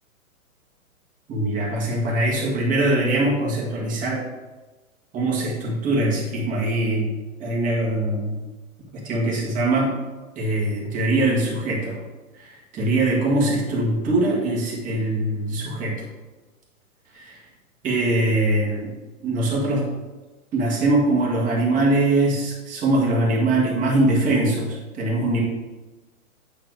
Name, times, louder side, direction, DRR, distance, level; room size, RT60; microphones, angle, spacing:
voice 1, 1.3-4.2 5.1-7.1 7.4-8.4 8.9-10.0 10.4-12.0 12.4-16.0 17.1-17.4 17.8-18.9 19.2-19.9 20.5-25.4, right 2 dB, 20° right, -4 dB, 1.8 m, -22 dB
8.9 x 3.3 x 6.4 m, 1.2 s
hypercardioid pair, 150°, 43 cm